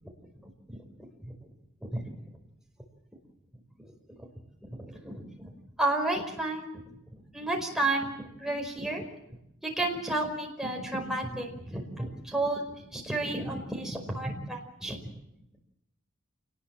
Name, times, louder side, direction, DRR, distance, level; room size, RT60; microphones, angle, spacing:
voice 1, 4.6-5.5 5.8-6.7 7.1-9.0 9.6-12.6 12.9-15.0, right 2 dB, ahead, 1 dB, 5.0 m, -32 dB
27.5 x 20.0 x 7.5 m, 0.83 s
head